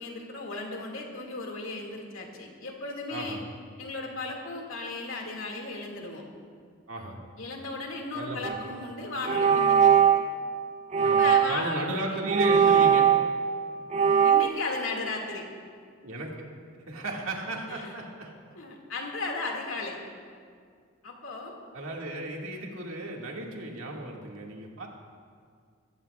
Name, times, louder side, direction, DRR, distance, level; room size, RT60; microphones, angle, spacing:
voice 1, 0.0-3.4 3.8-6.2 7.4-9.9 11.2-12.2 14.2-15.5 17.7-17.9 18.6-20.0 21.0-21.6, left 3 dB, 75° left, 1 dB, 2.2 m, -35 dB
voice 2, 8.1-8.8 11.0-11.2 11.5-13.1 16.0-16.3 16.9-18.3 21.7-24.9, right 2 dB, 80° right, -1 dB, 2.1 m, -35 dB
sound 1, 8.4-8.7 9.2-10.3 10.9-11.7 12.3-13.5 13.9-14.5, right 8 dB, 35° right, 0.6 m, -21 dB
22.5 x 15.0 x 2.4 m, 2.1 s
head